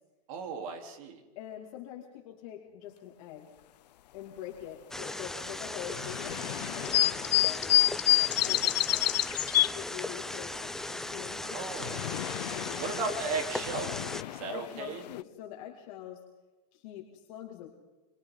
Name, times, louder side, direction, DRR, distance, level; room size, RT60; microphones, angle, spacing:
voice 1, 0.3-1.2 11.5-12.0 12.8-14.0 14.3-15.0, right 4 dB, 55° right, 3 dB, 3.9 m, -35 dB
voice 2, 1.3-3.5 4.1-9.3 9.7-12.0 12.5-13.5 14.5-16.2 16.7-17.7, left 11 dB, 55° left, -1 dB, 2.8 m, -45 dB
sound 1, 4.9-14.2, left 2 dB, ahead, 0.6 m, -38 dB
sound 2, 5.9-9.7 11.4-15.2, left 15 dB, 85° left, 0.6 m, -29 dB
29.5 x 25.5 x 4.0 m, 1.2 s
supercardioid pair, 160°, 21 cm